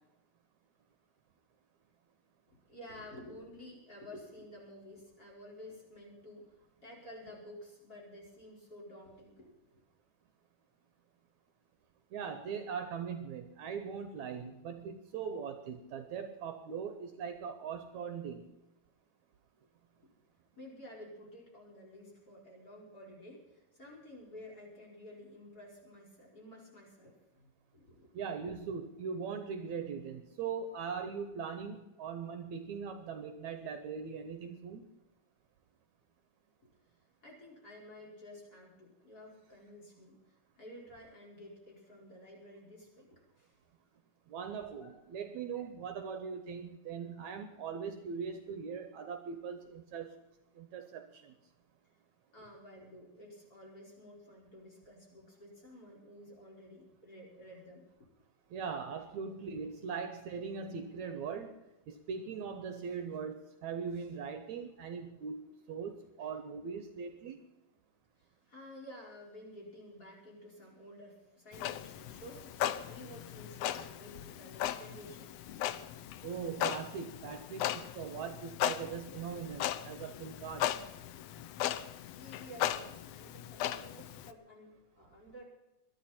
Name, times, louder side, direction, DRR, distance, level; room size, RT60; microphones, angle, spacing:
voice 1, 2.7-6.6 6.8-9.8 20.0-20.1 20.6-28.1 36.6-36.7 37.2-43.6 44.7-45.0 45.5-45.6 52.3-58.1 66.2-66.3 68.2-75.6 82.1-85.4, left 1 dB, 25° left, -2 dB, 5.3 m, -52 dB
voice 2, 12.1-18.5 28.1-34.9 44.3-50.2 50.6-51.3 58.5-61.5 61.9-65.4 65.7-67.4 76.2-80.7, right 6 dB, 70° right, 8 dB, 2.1 m, -40 dB
Clock, 71.5-84.3, left 11 dB, 85° left, 1.4 m, -38 dB
22.0 x 12.5 x 4.4 m, 0.99 s
omnidirectional pair, 3.8 m